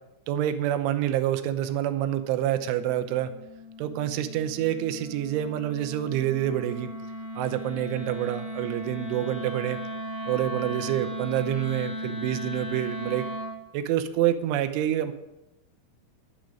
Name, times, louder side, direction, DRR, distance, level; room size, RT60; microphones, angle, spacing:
voice 1, 0.3-3.3 3.8-6.9 7.4-9.8 10.3-13.3 13.7-15.1, right 12 dB, 80° right, 8 dB, 3.2 m, -27 dB
Wind instrument woodwind instrument, 2.1-13.6, equal, 10° right, 1.7 m, -37 dB
12.0 x 9.9 x 5.1 m, 0.93 s
omnidirectional pair, 5.6 m